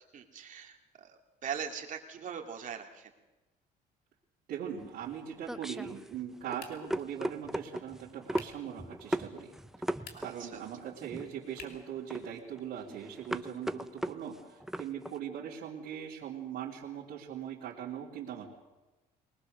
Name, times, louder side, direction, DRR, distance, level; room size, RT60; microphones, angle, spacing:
voice 1, 0.1-3.1 10.1-10.6, right 7 dB, 50° right, 3 dB, 2.6 m, -41 dB
voice 2, 4.5-9.5 9.9-18.5, right 9 dB, 70° right, -6 dB, 3.4 m, -40 dB
sound 1, 4.8-15.2, right 1 dB, ahead, 0.7 m, -38 dB
sound 2, 6.6-7.1 8.3-8.7 9.9-10.5 11.5-11.9, left 6 dB, 65° left, 2.7 m, -50 dB
22.5 x 19.5 x 6.7 m, 1.1 s
cardioid pair, 110°, 17 cm